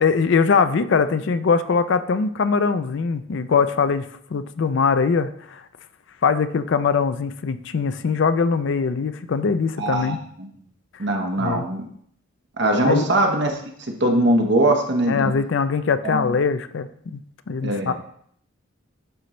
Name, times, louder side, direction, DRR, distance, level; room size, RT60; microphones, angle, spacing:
voice 1, 0.0-5.6 6.2-10.2 11.4-11.6 12.8-13.0 15.1-17.2 17.5-17.9, left 5 dB, 60° left, 11 dB, 0.4 m, -21 dB
voice 2, 9.8-10.2 11.0-11.9 12.6-15.3 16.0-16.2 17.6-17.9, right 1 dB, 55° right, 2 dB, 1.1 m, -21 dB
11.0 x 3.9 x 3.1 m, 0.65 s
head